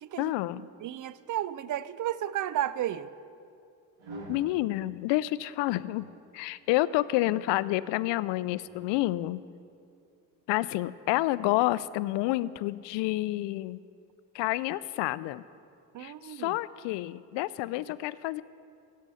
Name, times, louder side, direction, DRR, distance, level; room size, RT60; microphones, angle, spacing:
voice 1, 0.2-0.6 4.3-6.1 6.3-9.4 10.5-13.8 14.3-15.4 16.0-18.4, left 17 dB, 65° left, 18 dB, 0.5 m, -29 dB
voice 2, 0.8-3.1 15.9-16.6, right 12 dB, 40° right, 16 dB, 0.5 m, -33 dB
sound 1, 4.0-4.5 5.6-6.1 7.0-7.9 8.6-9.0, right 2 dB, 75° right, 2.4 m, -47 dB
16.5 x 6.4 x 5.6 m, 2.4 s
hypercardioid pair, 65°, 47 cm